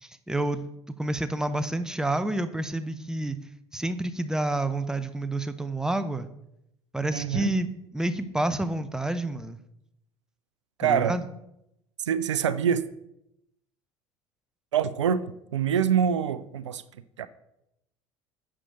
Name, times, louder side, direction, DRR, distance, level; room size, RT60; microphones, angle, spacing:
voice 1, 0.0-0.6 1.0-3.4 3.7-6.3 6.9-7.7 7.9-9.6 10.8-11.2, right 2 dB, 5° right, 0.8 m, -29 dB
voice 2, 7.1-7.5 10.8-11.2 12.0-12.8 14.7-15.2 15.5-16.8 17.2-17.3, right 8 dB, 80° right, 0.5 m, -25 dB
11.0 x 7.6 x 3.8 m
figure-of-eight pair, 70°, 15 cm